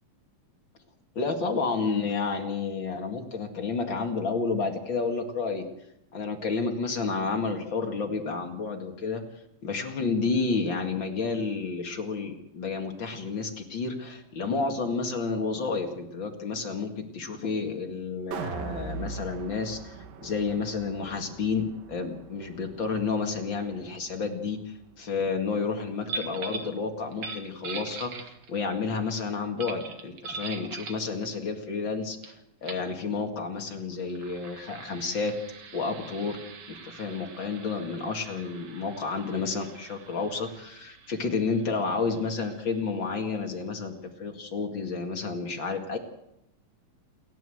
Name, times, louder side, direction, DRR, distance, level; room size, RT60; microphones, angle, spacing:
voice 1, 1.2-5.7 6.1-9.2 9.6-32.4 32.6-35.3 35.7-36.4 36.7-43.9 44.2-46.0, left 4 dB, 40° left, 3 dB, 2.2 m, -30 dB
sound 1, 18.3-24.5 24.9-25.0, right 5 dB, 70° right, 3.0 m, -41 dB
sound 2, 26.1-26.7 27.1-28.7 29.6-31.1 32.2-32.3 32.6-32.9 33.9-43.2, right 4 dB, 45° right, 2.2 m, -42 dB
29.0 x 12.0 x 7.9 m, 0.83 s
omnidirectional pair, 4.3 m